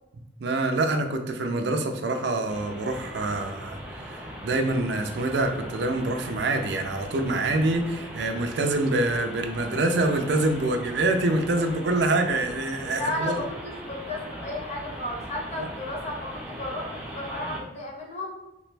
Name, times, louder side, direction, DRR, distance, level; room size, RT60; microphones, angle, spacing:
voice 1, 0.4-3.8 4.4-13.3 15.6-15.7, right 2 dB, 65° right, 5 dB, 0.4 m, -25 dB
sound 1, 2.5-17.6, equal, 5° right, 0.4 m, -40 dB
voice 2, 13.0-18.3, left 1 dB, 35° left, -2 dB, 0.8 m, -33 dB
3.3 x 3.0 x 3.2 m, 0.94 s
head